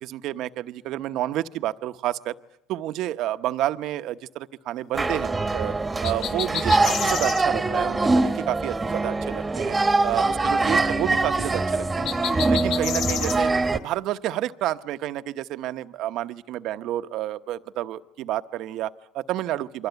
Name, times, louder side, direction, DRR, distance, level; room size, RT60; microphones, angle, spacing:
voice 1, 0.0-2.4 2.7-5.7 6.0-9.8 10.0-12.1 12.5-19.9, right 13 dB, 65° right, 11 dB, 1.0 m, -30 dB
sound 1, 4.9-13.8, right 3 dB, 20° right, 1.4 m, -23 dB
sound 2, 6.0-7.4 12.0-13.4, left 9 dB, 65° left, 1.1 m, -30 dB
28.5 x 23.5 x 8.1 m, 0.83 s
supercardioid pair, 90°, 0 cm